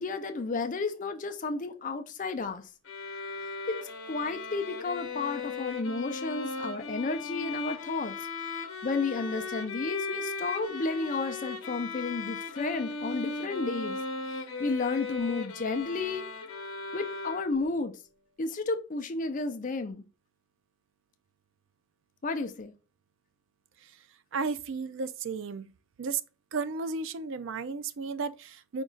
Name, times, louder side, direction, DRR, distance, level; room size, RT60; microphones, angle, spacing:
voice 1, 0.0-2.7 3.7-3.8 4.1-8.2 8.8-14.0 14.4-16.3 16.9-17.9 18.4-20.1 22.2-22.7, left 3 dB, 35° left, 0.4 m, -32 dB
sound 1, 2.8-17.8, left 3 dB, 65° left, 0.8 m, -37 dB
voice 2, 24.3-25.7 26.0-26.2 26.5-28.8, right 4 dB, 60° right, 0.4 m, -33 dB
5.2 x 2.3 x 3.7 m
head